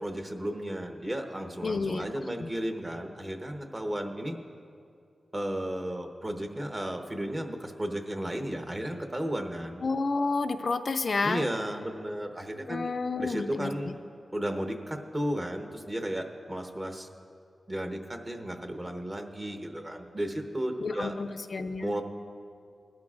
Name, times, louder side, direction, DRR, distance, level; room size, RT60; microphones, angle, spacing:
voice 1, 0.0-4.4 5.3-9.8 11.2-12.9 13.2-13.9 14.3-17.1 17.7-21.2 21.8-22.0, right 1 dB, 25° right, 4 dB, 0.9 m, -34 dB
voice 2, 1.6-2.1 2.4-2.5 9.8-11.5 12.7-13.9 20.8-21.9, left 3 dB, 60° left, 7 dB, 0.4 m, -30 dB
19.0 x 12.5 x 2.5 m, 2.3 s
wide cardioid pair, 110°, 0 cm